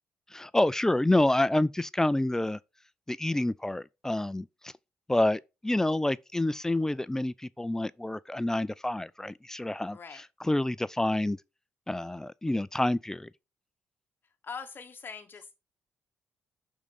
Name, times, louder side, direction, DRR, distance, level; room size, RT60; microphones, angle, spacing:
voice 1, 0.3-2.6 3.1-4.7 5.1-11.4 11.9-13.3, left 1 dB, 10° left, 0.3 m, -28 dB
voice 2, 9.9-10.2 14.4-15.5, left 5 dB, 40° left, 0.8 m, -42 dB
6.5 x 3.7 x 5.2 m
cardioid pair, 90°, 5 cm